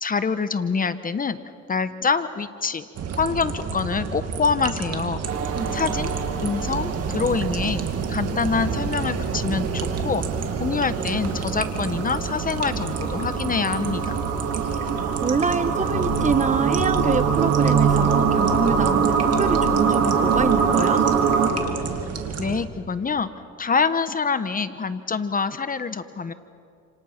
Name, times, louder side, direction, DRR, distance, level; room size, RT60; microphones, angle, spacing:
voice 1, 0.0-1.4 1.7-2.8 3.2-5.2 5.7-7.8 8.1-10.2 10.6-14.2 22.4-23.3 23.6-26.3, left 5 dB, 30° left, 12 dB, 1.1 m, -25 dB
sound 1, 2.9-22.6, right 5 dB, 55° right, 2.5 m, -30 dB
sound 2, 5.3-7.4 9.8-21.5, right 7 dB, 80° right, 4.5 m, -24 dB
voice 2, 5.6-5.9 15.2-21.1, right 4 dB, 25° right, 11 dB, 1.2 m, -26 dB
sound 3, 15.9-16.4 16.8-17.3 17.6-18.1 18.5-18.9 19.3-19.8 20.2-20.6, left 11 dB, 90° left, 1.4 m, -32 dB
29.0 x 27.5 x 5.9 m, 2.4 s
cardioid pair, 105°, 29 cm